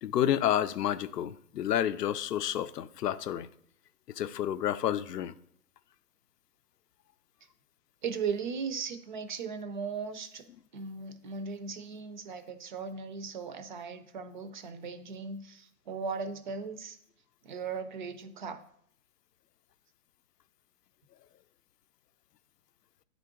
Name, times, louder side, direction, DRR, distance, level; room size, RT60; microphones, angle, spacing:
voice 1, 0.0-3.5 4.1-5.4, left 11 dB, 90° left, 0.6 m, -30 dB
voice 2, 8.0-10.4 10.7-17.0 17.4-18.6, right 5 dB, 35° right, 0.4 m, -37 dB
9.3 x 3.8 x 3.6 m
hypercardioid pair, 140°, 47 cm